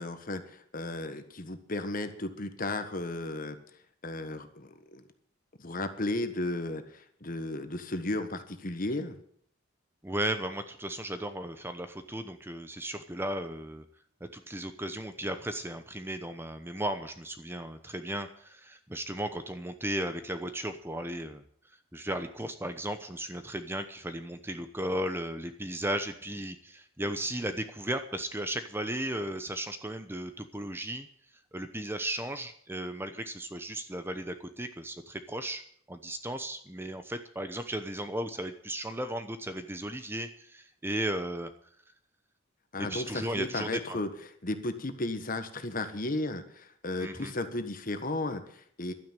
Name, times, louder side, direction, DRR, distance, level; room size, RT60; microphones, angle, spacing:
voice 1, 0.0-3.6 4.0-5.0 5.6-9.1 42.7-44.1 44.4-48.9, left 2 dB, 45° left, 9 dB, 1.4 m, -34 dB
voice 2, 10.0-13.8 14.3-21.4 21.9-31.1 31.5-35.6 35.9-41.5 42.8-44.0 47.0-47.3, right 1 dB, 10° right, 9 dB, 0.9 m, -35 dB
12.0 x 9.5 x 9.0 m, 0.64 s
head